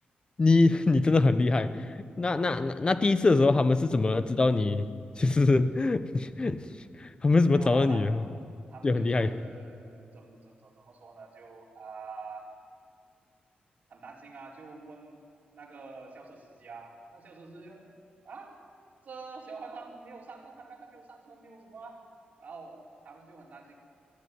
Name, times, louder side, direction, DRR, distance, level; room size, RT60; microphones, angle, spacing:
voice 1, 0.4-4.9 5.2-6.6 7.0-8.2 8.8-9.3, left 3 dB, 30° left, 13 dB, 0.9 m, -24 dB
voice 2, 7.5-8.1 8.7-12.5 13.9-15.3 15.5-17.8 18.2-18.5 19.0-22.0 22.4-23.7, right 4 dB, 55° right, -3 dB, 4.4 m, -46 dB
22.5 x 14.0 x 9.7 m, 2.4 s
wide cardioid pair, 120°, 3 cm